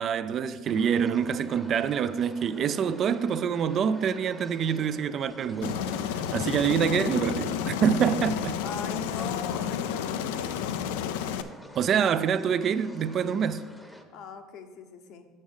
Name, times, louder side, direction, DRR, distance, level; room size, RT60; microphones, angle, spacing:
voice 1, 0.0-5.8 6.3-8.6 11.8-13.6, right 7 dB, 45° right, 0.3 m, -26 dB
sound 1, 0.6-14.0, equal, 5° left, 0.8 m, -48 dB
Aircraft, 5.6-11.4, left 8 dB, 85° left, 0.4 m, -31 dB
voice 2, 8.6-10.5 14.1-15.3, left 5 dB, 60° left, 0.9 m, -40 dB
6.4 x 6.0 x 5.5 m
supercardioid pair, 105°, 0 cm